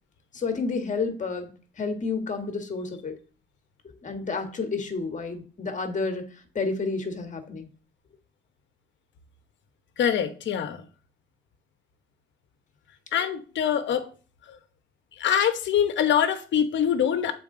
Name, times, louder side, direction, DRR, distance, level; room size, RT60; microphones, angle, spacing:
voice 1, 0.3-1.5 1.8-3.1 3.8-7.7, left 4 dB, 40° left, 1.6 m, -30 dB
voice 2, 10.0-10.8 13.1-14.1 15.2-17.3, left 9 dB, 65° left, 1.0 m, -24 dB
7.2 x 4.5 x 3.8 m
cardioid pair, 90°, 20 cm